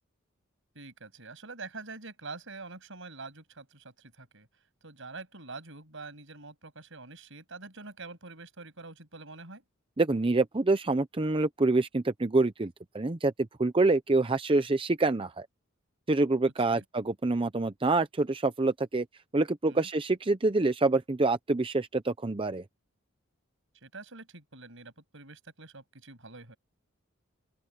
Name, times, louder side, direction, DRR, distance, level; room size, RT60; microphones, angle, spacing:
voice 1, 0.7-4.5 4.8-9.6 16.4-16.8 19.7-19.9 23.8-26.6, right 3 dB, 65° right, 7.7 m, -46 dB
voice 2, 10.0-13.3 13.6-15.5 16.1-19.0 19.3-22.6, right 2 dB, 25° right, 0.7 m, -26 dB
open air
head